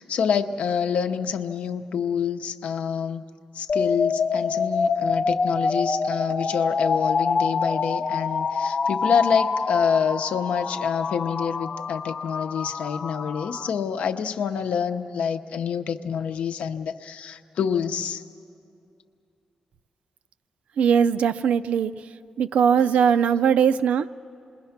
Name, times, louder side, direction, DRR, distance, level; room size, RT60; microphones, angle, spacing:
voice 1, 0.0-3.3 3.5-18.2 22.8-22.9, left 7 dB, 85° left, 8 dB, 0.7 m, -27 dB
sound 1, 3.7-13.7, left 4 dB, 45° left, 0.7 m, -26 dB
voice 2, 20.8-21.9 22.4-24.1, right 7 dB, 85° right, 13 dB, 0.4 m, -20 dB
28.0 x 21.0 x 5.8 m, 2.6 s
wide cardioid pair, 175°, 2 cm